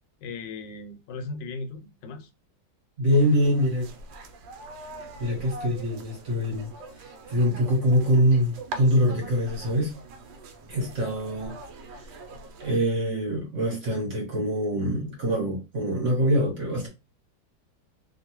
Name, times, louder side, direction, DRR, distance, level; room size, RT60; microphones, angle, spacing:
voice 1, 0.2-2.3, left 3 dB, 80° left, 1.2 m, -37 dB
voice 2, 3.0-3.9 5.2-6.7 7.0-9.9 10.7-11.5 12.6-16.9, equal, 50° right, 1.2 m, -24 dB
sound 1, 3.1-12.8, right 2 dB, 80° right, 1.2 m, -43 dB
2.9 x 2.5 x 2.9 m
omnidirectional pair, 2.0 m